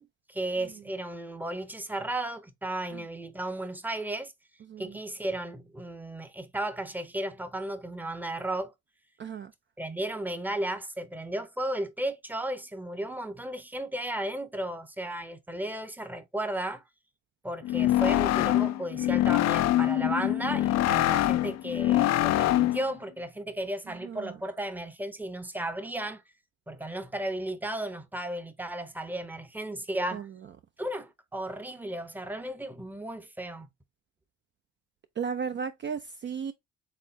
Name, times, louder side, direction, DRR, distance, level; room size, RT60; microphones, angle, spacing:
voice 1, 0.0-4.3 4.8-8.7 9.8-16.8 17.4-26.2 26.7-30.3 30.8-33.7, right 1 dB, 5° right, 0.7 m, -34 dB
voice 2, 9.2-9.5 24.0-24.3 30.1-30.2 35.2-36.5, right 6 dB, 40° right, 0.4 m, -34 dB
sound 1, 17.6-22.9, left 14 dB, 60° left, 0.4 m, -24 dB
4.3 x 3.6 x 3.2 m
cardioid pair, 90°, 30 cm